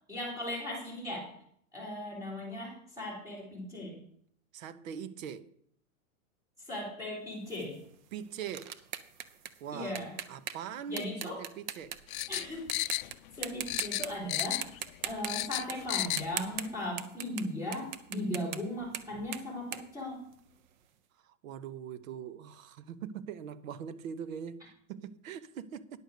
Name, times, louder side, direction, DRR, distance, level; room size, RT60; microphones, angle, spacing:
voice 1, 0.1-1.3 1.7-4.0 6.6-7.8 9.7-10.1 10.9-11.4 12.3-12.9 13.4-14.6 15.0-20.2, left 1 dB, 10° right, 3.8 m, -38 dB
voice 2, 4.5-5.5 8.1-8.8 9.6-10.0 10.3-12.0 21.2-26.0, right 8 dB, 70° right, 0.9 m, -42 dB
sound 1, 7.5-12.4 12.7-13.1 13.4-14.1 14.4-20.7, right 10 dB, 35° right, 0.6 m, -40 dB
sound 2, 12.1-13.4 13.7-14.8 15.1-16.3 16.6-16.7, left 16 dB, 80° left, 0.5 m, -33 dB
10.0 x 6.6 x 6.4 m
supercardioid pair, 160°, 41 cm